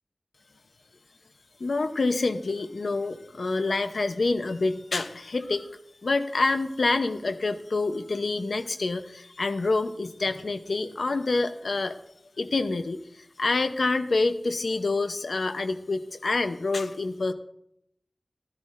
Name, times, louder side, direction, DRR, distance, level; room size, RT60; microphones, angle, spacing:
voice 1, 1.6-5.7 6.0-12.0 12.4-17.3, left 3 dB, 85° left, 9 dB, 0.7 m, -27 dB
13.5 x 12.5 x 2.5 m, 0.74 s
wide cardioid pair, 60°, 0 cm